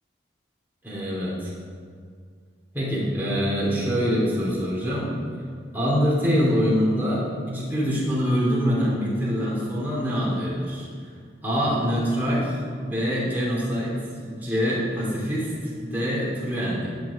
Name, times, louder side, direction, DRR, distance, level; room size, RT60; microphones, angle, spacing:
voice 1, 0.8-1.5 2.7-5.1 5.7-10.9 11.4-13.9 14.2-16.9, equal, 10° right, -7 dB, 2.8 m, -24 dB
10.5 x 6.2 x 5.9 m, 2.1 s
head